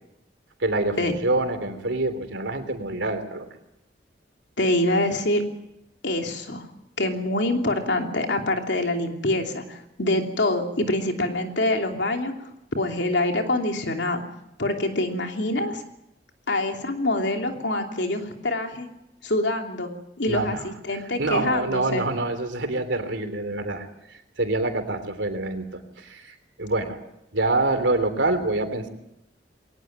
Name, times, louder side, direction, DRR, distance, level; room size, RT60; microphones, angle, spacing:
voice 1, 0.6-3.5 20.3-20.6 21.2-27.0 27.3-28.9, right 2 dB, 80° right, 8 dB, 3.3 m, -26 dB
voice 2, 4.6-5.4 6.0-6.7 7.0-12.5 12.8-14.2 14.6-15.8 16.5-18.9 19.2-19.9 20.2-22.1, left 1 dB, 70° left, 3 dB, 3.0 m, -25 dB
22.0 x 18.5 x 9.4 m, 0.84 s
head